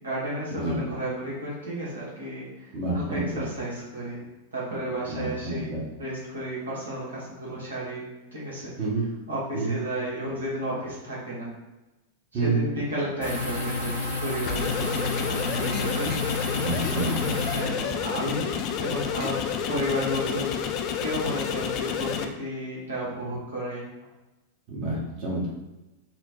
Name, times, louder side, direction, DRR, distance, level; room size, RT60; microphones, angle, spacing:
voice 1, 0.0-4.2 4.5-5.7 6.0-8.0 8.3-8.7 9.3-11.5 12.3-16.5 17.5-18.5 18.8-20.5 21.0-23.9, equal, 75° right, -6 dB, 1.1 m, -32 dB
voice 2, 2.7-3.4 5.1-5.8 8.8-9.1 9.5-9.8 12.3-12.6 16.6-17.4 24.7-25.5, right 2 dB, 40° right, -5 dB, 1.0 m, -28 dB
sound 1, 13.2-17.6, left 2 dB, 70° left, 1.3 m, -30 dB
sound 2, 14.4-22.3, left 8 dB, 40° left, 0.3 m, -30 dB
4.5 x 2.1 x 2.6 m, 1.0 s
figure-of-eight pair, 90°, 0 cm